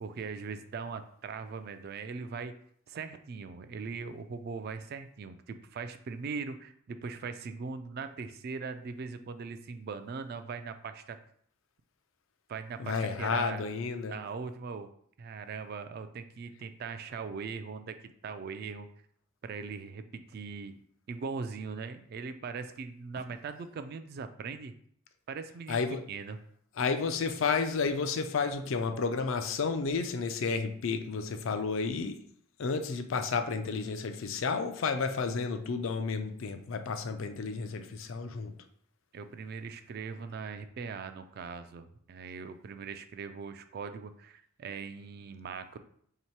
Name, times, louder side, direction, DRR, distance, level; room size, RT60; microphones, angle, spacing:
voice 1, 0.0-2.6 2.9-11.2 12.5-13.7 14.0-14.9 15.2-18.0 18.2-18.9 19.4-20.8 21.1-24.7 25.3-26.4 39.1-45.8, right 5 dB, 45° right, 10 dB, 0.3 m, -40 dB
voice 2, 12.8-14.1 25.7-26.0 26.8-32.2 32.6-38.5, left 4 dB, 65° left, 8 dB, 0.4 m, -31 dB
3.1 x 2.9 x 4.5 m, 0.63 s
head